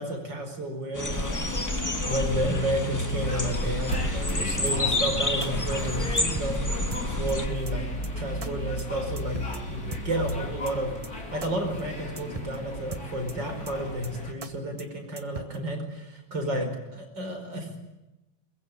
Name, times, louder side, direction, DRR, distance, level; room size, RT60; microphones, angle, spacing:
voice 1, 0.0-1.5 2.1-6.7 7.0-7.9 8.1-9.4 9.7-10.9 11.3-17.8, right 1 dB, 60° right, 5 dB, 5.7 m, -31 dB
sound 1, 0.9-7.5, left 2 dB, 10° left, 1.4 m, -29 dB
sound 2, 1.1-14.3, left 1 dB, 45° left, 4.2 m, -34 dB
sound 3, 3.9-4.3 4.7-4.8 5.0-5.1 5.4-5.5 5.8-5.9 6.2-6.6 6.9-7.3 7.7-7.8 8.0-8.1 8.4-8.5 8.8-8.9 9.2-9.6 9.9-10.3 10.7-10.8 11.0-11.1 11.4-11.5 11.8-11.9 12.2-12.6 12.9-13.3 13.7-13.8 14.0-14.1 14.4-14.5 14.8-14.9 15.2-15.6, right 4 dB, 25° right, 0.7 m, -39 dB
22.5 x 21.5 x 9.6 m, 0.99 s
omnidirectional pair, 2.2 m